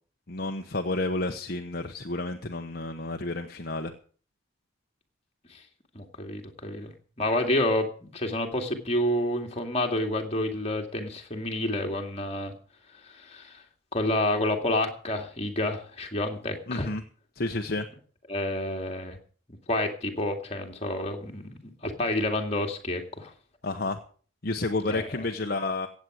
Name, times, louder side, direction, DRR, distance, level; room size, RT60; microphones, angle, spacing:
voice 1, 0.3-3.9 16.7-17.0 17.4-17.9 23.6-24.0 24.4-25.9, left 2 dB, 45° left, 4 dB, 1.0 m, -30 dB
voice 2, 5.9-6.9 7.2-12.5 13.0-13.6 13.9-16.9 18.3-19.2 19.7-23.3 24.8-25.1, left 1 dB, 30° left, 3 dB, 2.2 m, -29 dB
16.0 x 8.5 x 6.3 m, 0.42 s
head